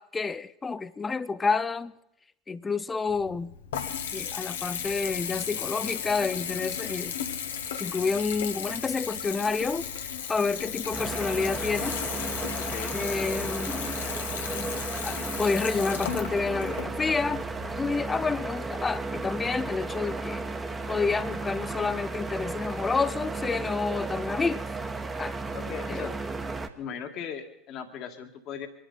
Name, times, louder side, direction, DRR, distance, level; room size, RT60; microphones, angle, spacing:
voice 1, 0.0-1.9 2.5-3.5 4.1-7.2 7.8-12.0 12.9-14.0 14.5-14.7 15.0-20.5 20.9-24.6 25.2-25.3 25.9-26.1, left 4 dB, 20° left, 0.6 m, -29 dB
Water tap faucet / Bathtub (filling or washing) / Trickle dribble, 3.1-17.9, left 8 dB, 70° left, 1.1 m, -35 dB
sound 1, 10.9-26.7, right 3 dB, 15° right, 1.4 m, -34 dB
voice 2, 12.6-13.0 25.5-26.1 26.8-28.7, left 7 dB, 45° left, 1.8 m, -38 dB
25.0 x 11.0 x 4.1 m
figure-of-eight pair, 70°, 0 cm